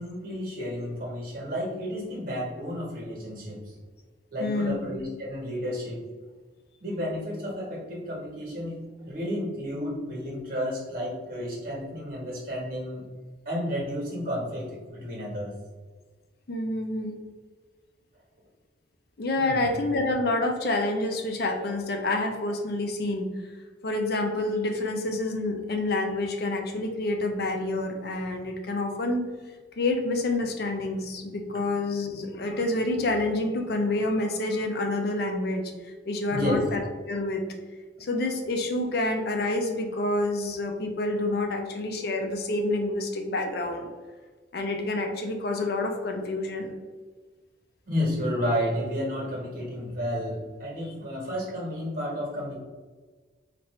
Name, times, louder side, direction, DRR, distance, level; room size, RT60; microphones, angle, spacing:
voice 1, 0.0-3.7 4.3-6.1 6.8-13.0 13.4-15.6 19.4-19.7 36.3-36.6 47.9-52.6, equal, 50° right, -3 dB, 1.3 m, -31 dB
voice 2, 4.4-4.9 16.5-17.1 19.2-23.3 23.8-29.2 29.8-35.7 36.1-36.8 37.1-37.4 38.0-43.9 44.5-46.7, left 2 dB, 55° left, 3 dB, 0.5 m, -28 dB
4.3 x 2.5 x 3.1 m, 1.4 s
head